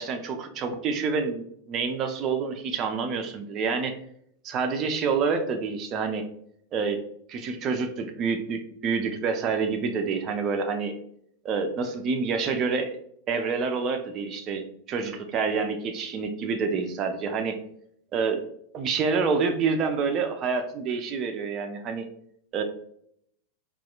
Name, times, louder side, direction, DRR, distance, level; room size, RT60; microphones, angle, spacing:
voice 1, 0.0-4.0 4.4-6.2 6.7-7.0 7.3-10.9 11.4-13.0 13.3-17.6 18.1-18.4 18.7-22.1 22.5-22.6, right 5 dB, 35° right, 6 dB, 0.4 m, -27 dB
4.0 x 2.3 x 2.3 m, 0.69 s
figure-of-eight pair, 90°, 0 cm